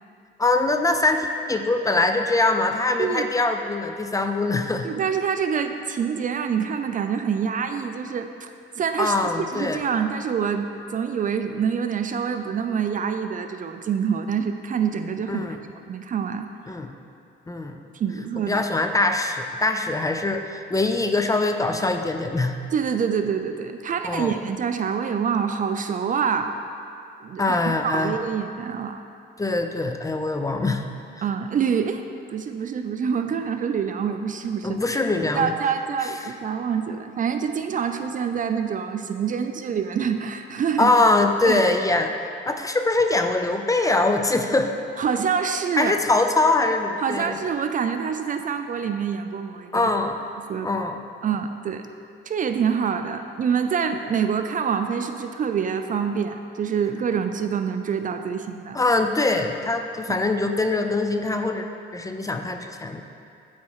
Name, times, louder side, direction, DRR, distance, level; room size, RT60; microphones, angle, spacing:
voice 1, 0.4-4.9 9.0-9.8 15.3-15.6 16.7-16.9 17.5-17.8 18.5-22.6 24.0-24.4 27.4-28.2 29.4-30.8 34.6-35.5 40.8-42.1 42.5-44.7 45.8-47.4 49.7-50.2 50.6-51.0 58.7-61.6 61.9-63.0, left 2 dB, 15° left, 5 dB, 0.5 m, -23 dB
voice 2, 3.0-3.3 4.8-16.5 17.9-18.6 22.7-26.5 27.2-29.0 31.2-32.0 32.3-34.8 35.3-40.9 41.4-41.6 45.0-45.9 47.0-49.9 50.5-50.7 51.2-51.9 52.3-58.8, right 7 dB, 40° right, 7 dB, 0.4 m, -26 dB
8.3 x 4.3 x 4.7 m, 2.5 s
cardioid pair, 90°, 20 cm